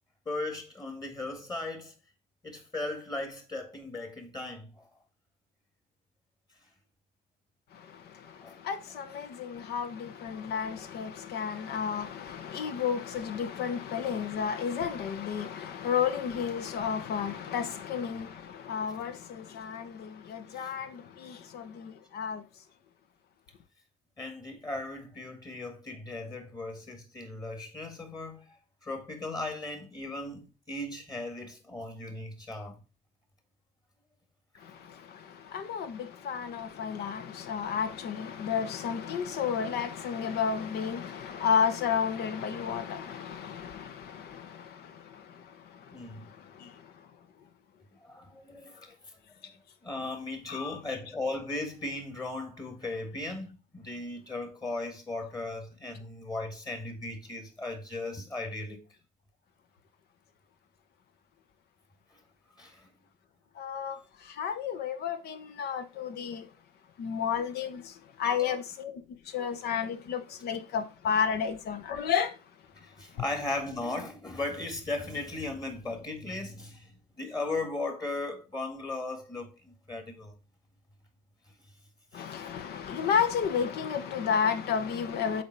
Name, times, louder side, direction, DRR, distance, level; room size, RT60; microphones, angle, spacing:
voice 1, 0.3-1.9 2.4-4.9 8.4-8.6 20.5-20.7 24.2-28.6 28.8-32.8 45.9-46.3 48.0-49.0 49.8-58.8 62.6-62.9 68.2-68.6 72.8-80.4 82.1-82.5, left 2 dB, 25° left, 1.9 m, -37 dB
voice 2, 7.7-22.4 34.6-47.1 48.8-48.9 49.4-49.5 50.5-50.8 63.5-66.5 67.0-72.4 73.1-73.2 82.1-85.4, left 7 dB, 70° left, 1.0 m, -32 dB
7.2 x 4.5 x 4.6 m
cardioid pair, 110°, 17 cm